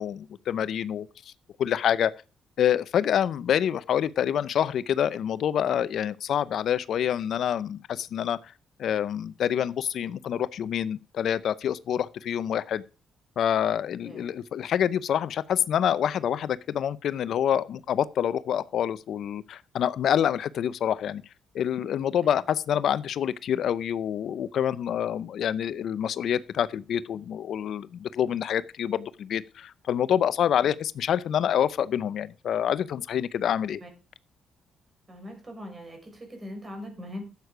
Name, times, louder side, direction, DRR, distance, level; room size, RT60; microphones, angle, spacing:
voice 1, 0.0-1.3 1.6-2.1 2.6-8.5 8.8-12.8 13.4-21.2 21.5-33.8, left 9 dB, 70° left, 0.6 m, -27 dB
voice 2, 35.1-37.2, left 1 dB, 25° right, 5.6 m, -41 dB
12.5 x 8.2 x 4.9 m
cardioid pair, 95°, 0 cm